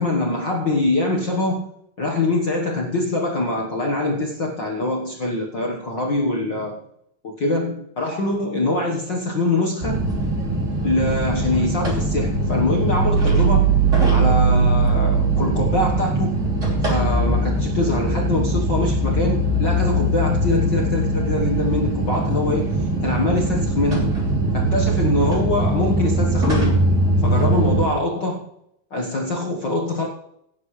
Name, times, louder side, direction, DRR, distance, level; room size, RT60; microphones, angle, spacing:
voice 1, 0.0-1.7 2.0-6.8 7.2-10.0 10.8-13.7 14.1-16.4 16.8-24.1 24.5-26.8 27.2-28.4 28.9-30.1, left 2 dB, 55° left, -1 dB, 1.2 m, -23 dB
sound 1, 9.8-27.9, right 2 dB, 20° right, 3.1 m, -20 dB
17.0 x 9.8 x 3.2 m, 0.77 s
omnidirectional pair, 4.0 m